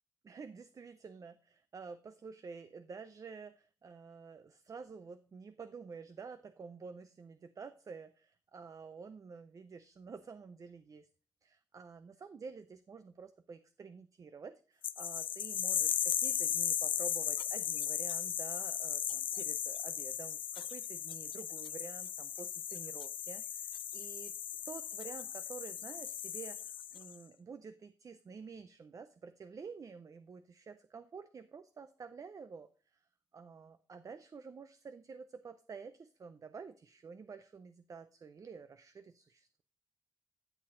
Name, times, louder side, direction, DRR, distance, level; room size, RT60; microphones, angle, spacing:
voice 1, 0.2-11.1 11.4-24.3 24.7-33.1 33.3-39.6, right 5 dB, 40° right, 11 dB, 0.5 m, -50 dB
sound 1, 14.8-27.1, left 10 dB, 85° left, 0.4 m, -37 dB
12.5 x 7.6 x 3.8 m, 0.39 s
wide cardioid pair, 145°, 8 cm